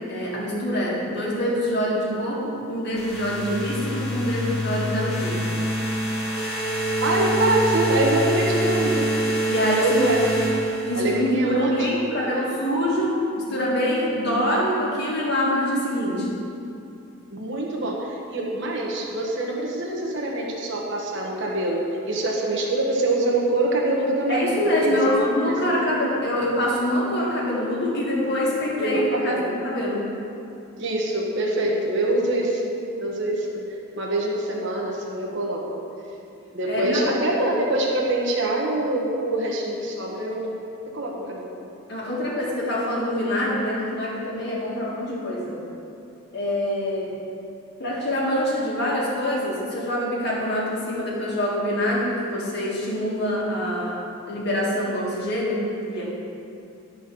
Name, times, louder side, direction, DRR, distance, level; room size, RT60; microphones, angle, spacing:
voice 1, 0.1-5.4 9.4-10.1 10.9-16.3 24.3-30.0 36.7-37.1 41.9-45.6 46.3-47.1 47.8-54.0 54.3-56.1, left 1 dB, 50° left, -4 dB, 1.8 m, -25 dB
sound 1, 3.0-11.3, right 1 dB, 80° left, 1.5 m, -25 dB
voice 2, 7.0-9.1 9.7-10.3 10.9-12.5 17.3-24.5 24.8-25.9 28.8-29.5 30.8-32.7 33.0-35.7 36.5-40.5 40.9-41.5, right 1 dB, 55° right, -2 dB, 1.2 m, -25 dB
10.0 x 4.3 x 6.1 m, 2.7 s
head